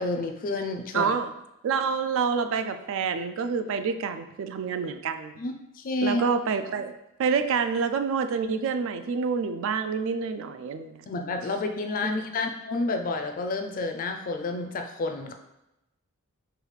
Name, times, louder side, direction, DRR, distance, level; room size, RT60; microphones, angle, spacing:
voice 1, 0.0-1.1 5.4-6.2 11.1-15.3, left 2 dB, 40° left, 5 dB, 0.4 m, -30 dB
voice 2, 0.9-1.3 1.6-5.3 6.0-6.9 7.2-11.1 12.0-12.1, right 5 dB, 65° right, 9 dB, 0.3 m, -27 dB
4.8 x 2.3 x 3.2 m, 0.89 s
head